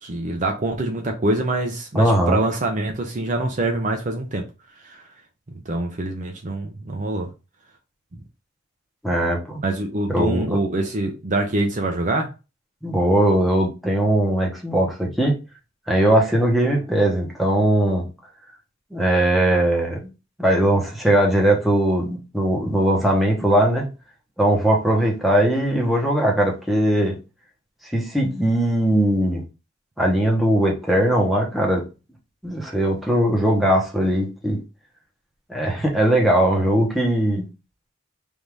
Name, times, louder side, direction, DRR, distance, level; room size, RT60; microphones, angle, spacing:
voice 1, 0.0-4.4 4.8-5.0 5.7-7.3 9.6-12.3, right 2 dB, 40° right, 0.6 m, -25 dB
voice 2, 1.9-2.4 9.0-9.6 10.1-10.4 12.8-15.4 15.9-18.1 18.9-20.1 20.4-23.9 24.4-27.1 27.9-29.4 30.0-31.8 32.4-34.6 35.5-37.5, right 1 dB, ahead, 1.0 m, -19 dB
3.5 x 2.7 x 4.6 m
head